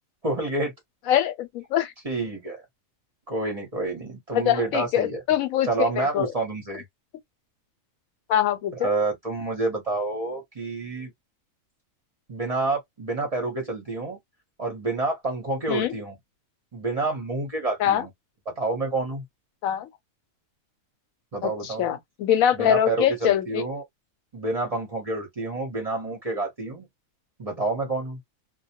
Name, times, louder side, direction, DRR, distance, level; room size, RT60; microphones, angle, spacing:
voice 1, 0.2-0.7 2.0-2.6 3.3-5.2 5.6-6.8 8.7-11.1 12.3-14.2 14.6-16.1 16.7-18.1 18.5-19.2 21.3-21.9 22.5-23.8 24.3-26.9 27.4-28.2, right 2 dB, 35° right, 0.7 m, -28 dB
voice 2, 1.1-1.9 4.3-6.3 8.3-8.9 15.7-15.9 17.8-18.0 19.6-19.9 21.4-23.6, left 10 dB, 85° left, 1.0 m, -23 dB
2.2 x 2.1 x 2.7 m
omnidirectional pair, 1.4 m